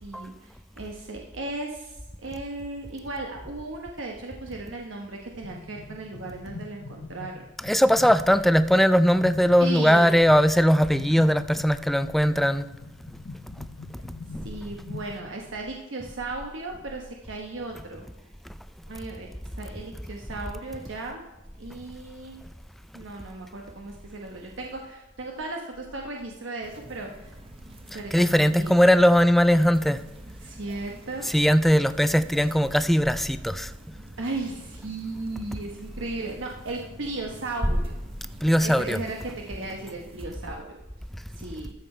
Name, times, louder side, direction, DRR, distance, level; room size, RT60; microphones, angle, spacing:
voice 1, 0.0-7.4 8.3-8.4 9.6-10.1 14.4-18.1 18.9-19.3 19.5-21.2 21.6-22.4 22.9-27.3 27.9-28.7 30.4-31.4 34.2-38.0 38.6-40.8 41.3-41.7, right 2 dB, 80° right, 1.0 m, -36 dB
sound 1, 5.4-15.5, left 3 dB, 65° left, 0.8 m, -42 dB
voice 2, 7.6-12.7 14.3-14.5 27.9-30.0 31.3-33.7 38.4-39.0, equal, ahead, 0.3 m, -20 dB
sound 2, 26.6-40.3, right 1 dB, 30° right, 0.8 m, -47 dB
13.0 x 6.7 x 4.3 m
head